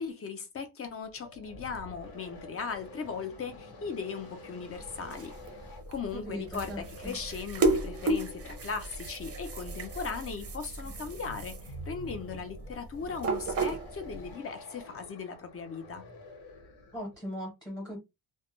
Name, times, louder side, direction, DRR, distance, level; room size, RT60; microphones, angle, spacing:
voice 1, 0.0-5.3 5.9-16.0, left 5 dB, 30° left, 0.5 m, -38 dB
sound 1, 1.0-17.1, left 2 dB, 85° left, 1.1 m, -49 dB
sound 2, 4.7-14.3, right 2 dB, 35° right, 0.5 m, -34 dB
voice 2, 6.1-7.2 16.9-18.0, equal, 10° left, 0.8 m, -39 dB
2.2 x 2.1 x 3.0 m
wide cardioid pair, 165°, 46 cm